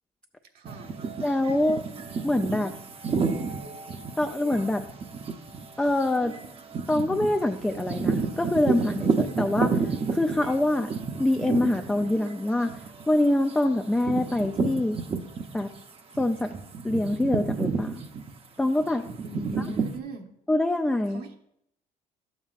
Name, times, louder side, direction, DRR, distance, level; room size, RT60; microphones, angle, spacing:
voice 1, 0.5-1.0 19.2-20.3 21.1-21.4, equal, 65° right, 3 dB, 1.2 m, -40 dB
sound 1, 0.6-15.8 16.1-20.0, right 5 dB, 35° right, 0.7 m, -31 dB
voice 2, 1.2-1.8 2.2-2.7 4.2-4.9 5.8-6.3 6.9-9.8 10.1-10.9 11.2-12.7 13.1-15.0 15.5-15.7 16.2-16.5 16.8-18.0 18.6-19.1 20.5-21.2, left 1 dB, 5° left, 4 dB, 0.4 m, -25 dB
11.5 x 7.4 x 2.5 m, 0.76 s
cardioid pair, 110°, 17 cm